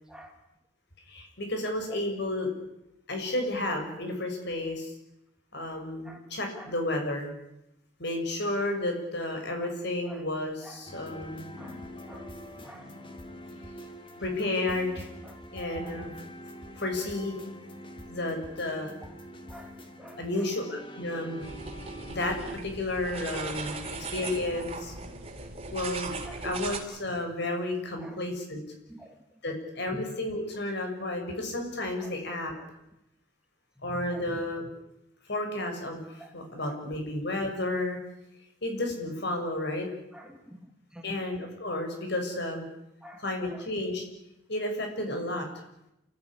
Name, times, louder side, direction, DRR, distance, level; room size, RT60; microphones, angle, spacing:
voice 1, 0.1-0.4 1.9-2.0 6.0-6.2 6.5-6.7 9.6-9.7 10.0-10.2 10.6-11.1 11.6-13.0 14.8-14.9 15.2-15.4 15.8-16.1 19.0-19.1 19.5-20.5 23.7-23.9 24.2-24.3 26.2-26.4 27.5-27.7 28.0-28.2 28.9-29.1 29.9-30.0 32.0-32.2 32.6-32.7 33.8-34.4 36.2-36.8 40.1-40.6 40.9-41.2 43.0-43.7, equal, 5° right, 3 dB, 2.2 m, -48 dB
voice 2, 1.1-2.5 3.1-4.9 5.5-7.3 8.0-11.5 14.2-15.0 15.5-16.1 16.8-17.3 18.1-18.9 20.2-20.6 21.0-21.5 22.1-23.8 24.1-24.9 25.7-26.1 26.4-28.6 29.4-32.5 33.8-34.7 35.3-38.0 38.6-39.9 41.0-42.7 43.2-44.0 44.5-45.5, left 1 dB, 55° left, 4 dB, 6.5 m, -32 dB
sound 1, 10.9-22.6, equal, 25° left, 2.4 m, -45 dB
sound 2, 21.4-26.8, right 3 dB, 30° right, 3.2 m, -38 dB
28.5 x 14.0 x 10.0 m, 0.87 s
head